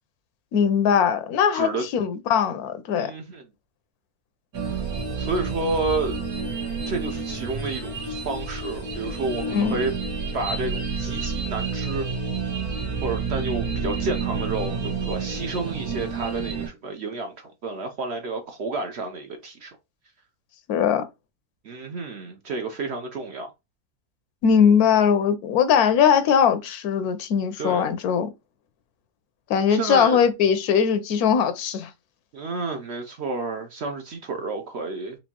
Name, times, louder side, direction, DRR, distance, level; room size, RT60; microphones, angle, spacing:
voice 1, 0.5-3.1 9.5-9.9 20.7-21.1 24.4-28.3 29.5-31.9, left 7 dB, 85° left, 1.1 m, -20 dB
voice 2, 1.5-1.8 3.0-3.4 4.5-4.8 5.2-6.2 6.9-9.9 10.3-12.0 13.0-19.8 21.6-23.5 27.6-27.9 29.7-30.2 32.3-35.2, right 3 dB, 60° right, 0.7 m, -30 dB
sound 1, 4.5-16.7, right 4 dB, 80° right, 1.8 m, -29 dB
4.4 x 2.6 x 2.8 m
omnidirectional pair, 1.6 m